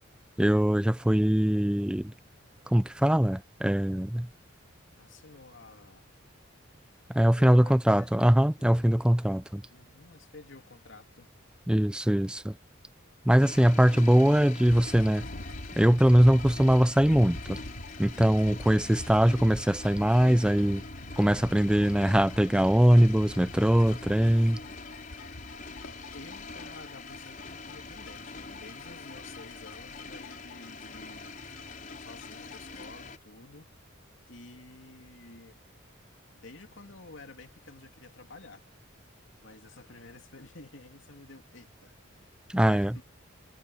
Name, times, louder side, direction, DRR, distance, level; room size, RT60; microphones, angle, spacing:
voice 1, 0.4-2.1 2.7-4.3 7.1-9.6 11.7-12.6 13.3-15.3 15.8-17.6 18.0-20.8 21.2-24.6 42.5-43.0, equal, 5° right, 0.4 m, -22 dB
voice 2, 5.0-6.1 7.2-8.3 8.7-9.0 9.7-11.3 24.2-24.7 26.1-31.4 32.0-33.7 34.3-35.6 36.3-38.6 39.4-43.0, left 3 dB, 65° left, 2.8 m, -51 dB
sound 1, 13.4-33.2, left 3 dB, 40° left, 5.6 m, -45 dB
sound 2, 14.6-32.9, left 1 dB, 85° left, 2.5 m, -45 dB
head